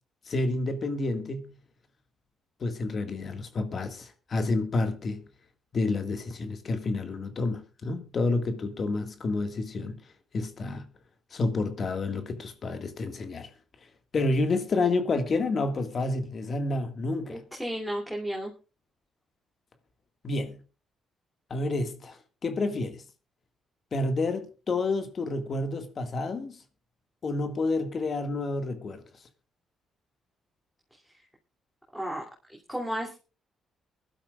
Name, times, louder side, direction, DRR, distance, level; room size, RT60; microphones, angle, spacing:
voice 1, 0.3-1.5 2.6-5.2 5.7-10.0 10.3-10.8 11.3-13.5 14.1-17.4 20.2-20.6 21.5-22.2 22.4-23.0 23.9-26.6 27.2-29.0, left 3 dB, 45° left, 1.8 m, -29 dB
voice 2, 17.3-18.5 31.1-31.2 31.9-33.2, equal, ahead, 2.9 m, -34 dB
23.5 x 12.0 x 2.4 m
cardioid pair, 90°, 0 cm